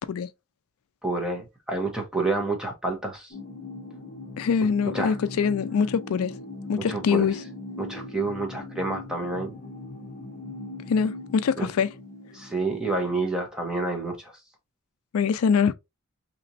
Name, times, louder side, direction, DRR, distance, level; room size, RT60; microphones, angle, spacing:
voice 1, 1.0-3.3 4.9-5.1 6.9-7.3 7.8-9.5 11.6-11.7 12.3-14.3, right 2 dB, 5° right, 0.9 m, -29 dB
sound 1, 3.3-13.1, left 2 dB, 40° left, 0.8 m, -39 dB
voice 2, 4.4-6.3 6.7-7.4 10.9-11.9 15.1-15.7, left 6 dB, 80° left, 0.4 m, -23 dB
4.1 x 3.0 x 2.6 m
head